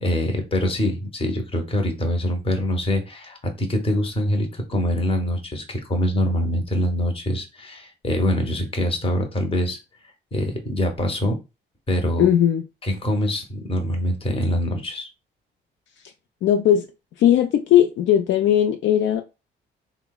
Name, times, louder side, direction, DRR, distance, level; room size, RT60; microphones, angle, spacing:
voice 1, 0.0-9.8 10.3-11.4 11.9-12.3 12.8-15.1, left 1 dB, 30° left, 0.8 m, -24 dB
voice 2, 12.2-12.6 16.4-16.9 17.2-19.2, left 10 dB, 70° left, 0.4 m, -18 dB
3.1 x 2.0 x 2.3 m
cardioid pair, 90°, 20 cm